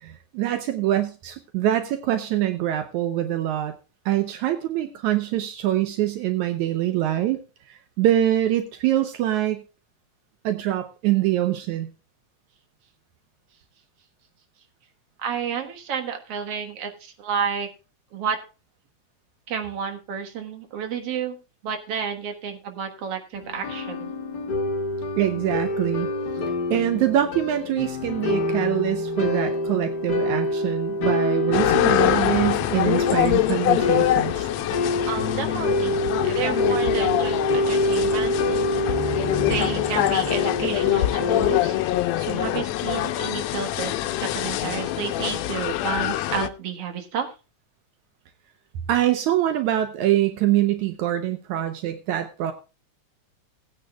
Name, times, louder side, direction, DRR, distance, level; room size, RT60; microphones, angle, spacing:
voice 1, 0.0-3.8 4.1-7.4 7.7-9.6 10.4-11.9 25.2-26.1 26.7-34.5 48.9-52.5, right 12 dB, 80° right, 8 dB, 2.3 m, -24 dB
voice 2, 15.2-17.7 18.1-18.4 19.5-21.4 21.6-24.1 35.1-36.0 36.2-38.6 39.1-41.8 42.2-43.9 44.2-47.3, right 7 dB, 55° right, 4 dB, 2.4 m, -31 dB
sound 1, 23.3-41.7, left 2 dB, 40° left, 1.7 m, -26 dB
sound 2, 31.5-46.5, left 14 dB, 75° left, 1.8 m, -24 dB
19.0 x 9.3 x 2.4 m, 0.31 s
omnidirectional pair, 3.4 m